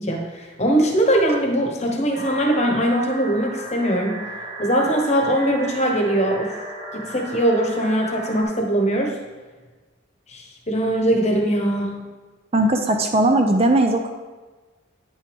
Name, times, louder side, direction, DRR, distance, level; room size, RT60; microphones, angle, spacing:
voice 1, 0.0-4.2 4.6-6.6 6.9-9.1 10.3-12.0, right 1 dB, 35° left, 2 dB, 1.1 m, -21 dB
sound 1, 2.1-8.4, right 1 dB, 50° right, 2.3 m, -35 dB
voice 2, 12.5-14.1, right 1 dB, 30° right, 4 dB, 0.5 m, -18 dB
9.1 x 6.1 x 3.5 m, 1.3 s
head